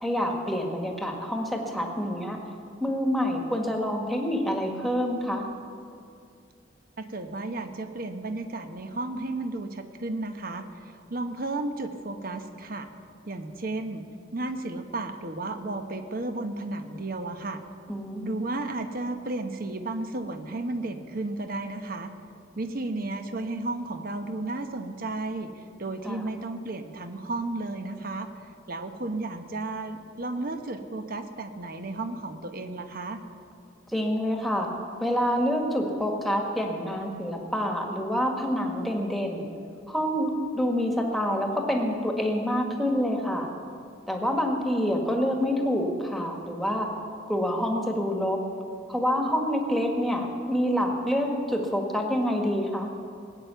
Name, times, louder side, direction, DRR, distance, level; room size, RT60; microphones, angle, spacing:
voice 1, 0.0-2.4 2.8-5.5 17.9-18.6 26.0-26.3 33.9-34.7 35.0-39.5 39.9-43.5 44.1-46.9 47.3-48.4 48.9-52.9, equal, ahead, 1 dB, 1.6 m, -27 dB
voice 2, 7.0-12.9 13.3-14.0 14.3-17.6 18.2-22.1 22.6-25.5 25.8-28.3 28.7-33.2, right 2 dB, 50° right, 7 dB, 1.0 m, -33 dB
19.5 x 9.1 x 7.0 m, 2.4 s
head